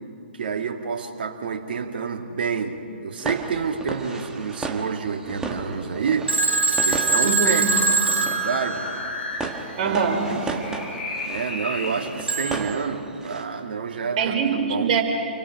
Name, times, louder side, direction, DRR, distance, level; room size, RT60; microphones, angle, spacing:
voice 1, 0.3-7.7 8.1-8.9 9.8-9.9 10.3-10.5 11.2-14.3 14.7-14.9, right 6 dB, 55° right, 3 dB, 2.2 m, -28 dB
sound 1, 3.2-13.4, right 3 dB, 10° right, 1.6 m, -35 dB
sound 2, 5.2-12.6, left 3 dB, 55° left, 3.6 m, -36 dB
Telephone, 6.3-9.3 12.3-12.7, right 4 dB, 70° right, 1.9 m, -23 dB
voice 2, 7.2-7.7 9.8-10.4 14.2-15.0, right 6 dB, 40° right, 1 dB, 4.1 m, -23 dB
29.0 x 24.0 x 5.3 m, 2.6 s
figure-of-eight pair, 130°, 6 cm